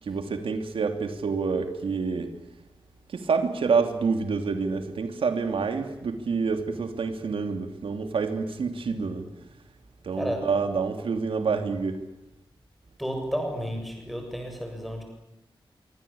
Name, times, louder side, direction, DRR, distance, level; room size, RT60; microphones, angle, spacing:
voice 1, 0.0-2.3 3.1-9.3 10.0-12.0, right 5 dB, 85° right, 7 dB, 3.0 m, -27 dB
voice 2, 10.1-10.5 13.0-15.0, equal, ahead, 3 dB, 7.4 m, -32 dB
25.5 x 25.5 x 8.7 m, 0.88 s
wide cardioid pair, 180°, 9 cm